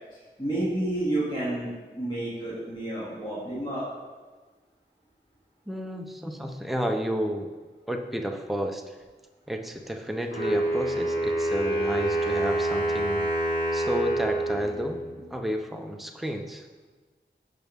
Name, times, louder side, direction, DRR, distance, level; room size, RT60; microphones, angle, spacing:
voice 1, 0.1-3.8, right 1 dB, 25° left, -10 dB, 2.8 m, -30 dB
voice 2, 5.7-7.5 7.9-8.9 9.5-13.3 13.7-15.0 15.3-16.7, equal, ahead, 3 dB, 0.8 m, -31 dB
Wind instrument woodwind instrument, 10.3-15.3, right 1 dB, 75° left, 3.3 m, -27 dB
14.0 x 5.4 x 3.7 m, 1.3 s
wide cardioid pair, 55°, 20 cm